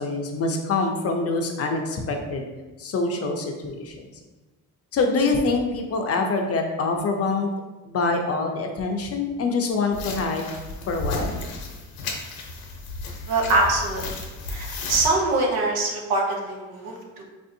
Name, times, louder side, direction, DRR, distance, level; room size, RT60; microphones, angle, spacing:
voice 1, 0.0-2.4 2.8-4.1 4.9-7.5 7.8-10.5 10.9-11.4, left 3 dB, 45° left, 3 dB, 0.5 m, -25 dB
sound 1, 9.9-15.1, left 3 dB, 85° left, 0.8 m, -33 dB
voice 2, 13.3-14.0 14.5-17.2, right 2 dB, 90° right, 0 dB, 0.9 m, -23 dB
4.7 x 2.6 x 2.6 m, 1.2 s
cardioid pair, 115°, 36 cm